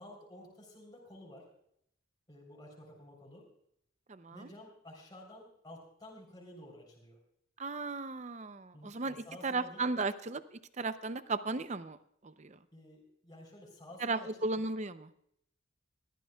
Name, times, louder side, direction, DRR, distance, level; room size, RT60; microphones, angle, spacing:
voice 1, 0.0-1.5 2.3-3.5 4.3-7.2 8.7-10.1 12.7-14.6, left 1 dB, 20° left, -1 dB, 3.6 m, -52 dB
voice 2, 4.1-4.5 7.6-10.4 10.8-12.0 12.2-12.6 14.0-15.1, right 3 dB, 35° right, 13 dB, 0.6 m, -35 dB
20.5 x 14.0 x 2.3 m, 0.72 s
head